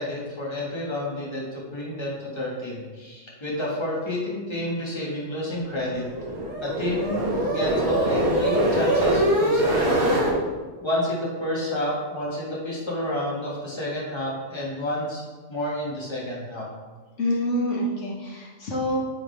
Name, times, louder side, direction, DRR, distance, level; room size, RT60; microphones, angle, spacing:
voice 1, 0.0-6.0 6.6-10.2 10.8-15.2 15.5-16.7, left 1 dB, 20° left, -5 dB, 2.1 m, -29 dB
sound 1, 5.6-10.3, right 1 dB, 40° right, 1.4 m, -23 dB
voice 2, 17.2-19.0, left 1 dB, 70° left, -4 dB, 1.8 m, -26 dB
10.0 x 5.6 x 3.5 m, 1.3 s
omnidirectional pair, 1.3 m